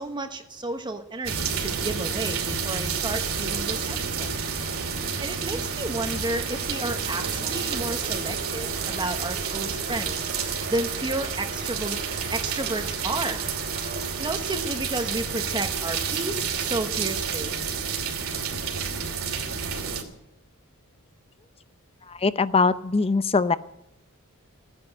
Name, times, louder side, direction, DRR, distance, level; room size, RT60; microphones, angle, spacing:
voice 1, 0.0-4.3 5.2-10.3 10.7-12.0 12.3-13.4 14.2-17.5, right 2 dB, 20° right, 5 dB, 1.2 m, -32 dB
sound 1, 1.2-20.0, right 6 dB, 65° right, 2.9 m, -30 dB
sound 2, 3.3-15.6, right 3 dB, 40° right, 2.3 m, -42 dB
voice 2, 22.2-23.6, left 4 dB, 25° left, 14 dB, 0.6 m, -21 dB
16.0 x 10.0 x 9.0 m, 0.86 s
head